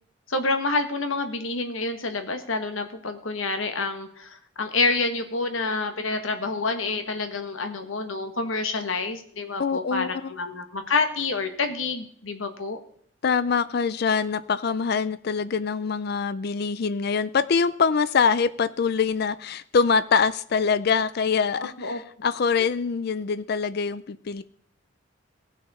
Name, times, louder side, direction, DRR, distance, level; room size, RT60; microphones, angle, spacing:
voice 1, 0.3-12.8 21.6-22.0, left 3 dB, 85° left, 7 dB, 1.5 m, -28 dB
voice 2, 9.6-10.3 13.2-24.4, left 5 dB, 55° left, 14 dB, 0.4 m, -24 dB
18.0 x 6.3 x 4.2 m, 0.62 s
head